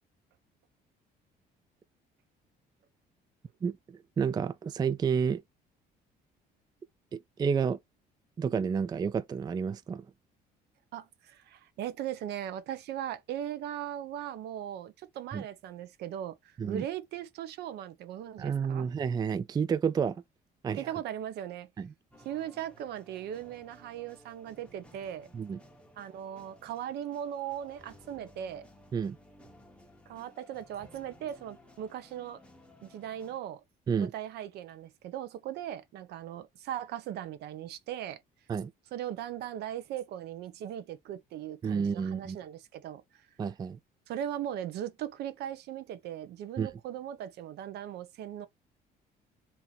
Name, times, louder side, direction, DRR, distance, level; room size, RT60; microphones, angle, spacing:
voice 1, 3.6-5.4 7.1-7.8 8.4-10.0 15.3-15.4 16.6-16.9 18.4-20.2 20.6-20.9 21.8-21.9 25.3-25.6 28.9-29.2 33.9-34.1 38.5-38.7 41.6-42.4 43.4-43.8 46.6-46.7, right 6 dB, 25° right, 0.3 m, -30 dB
voice 2, 10.9-18.9 20.7-21.7 22.2-25.3 26.0-28.6 30.1-32.4 32.8-33.6 34.0-38.2 38.9-43.0 44.1-48.5, right 10 dB, 75° right, 0.8 m, -38 dB
sound 1, 22.1-33.4, left 1 dB, 5° left, 1.0 m, -57 dB
2.9 x 2.8 x 4.0 m
cardioid pair, 110°, 17 cm